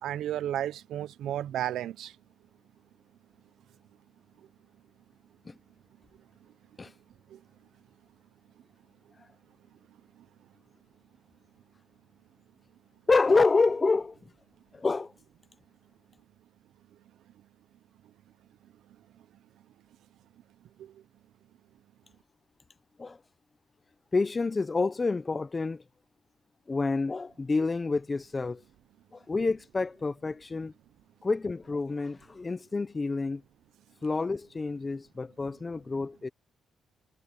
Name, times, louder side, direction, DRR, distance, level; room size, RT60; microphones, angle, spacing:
voice 1, 0.0-2.2 7.3-7.4 10.2-10.3 20.8-21.0, right 12 dB, 75° right, 0.8 m, -33 dB
voice 2, 13.1-14.2 14.7-15.1 23.0-23.2 24.1-25.8 26.7-28.6 29.1-30.7 31.2-33.4 34.0-36.3, left 3 dB, 25° left, 0.8 m, -28 dB
cardioid pair, 90°, 0 cm